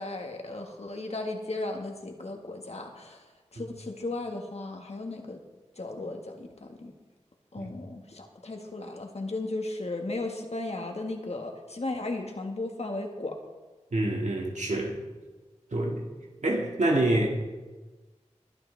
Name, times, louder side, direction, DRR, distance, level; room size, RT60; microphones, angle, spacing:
voice 1, 0.0-3.2 3.5-5.4 5.8-6.9 7.5-13.4, left 2 dB, 60° left, 2 dB, 1.6 m, -35 dB
voice 2, 13.9-15.0 15.7-16.1 16.4-17.3, right 1 dB, 80° right, 0 dB, 2.0 m, -27 dB
21.0 x 8.9 x 3.4 m, 1.3 s
wide cardioid pair, 65°, 12 cm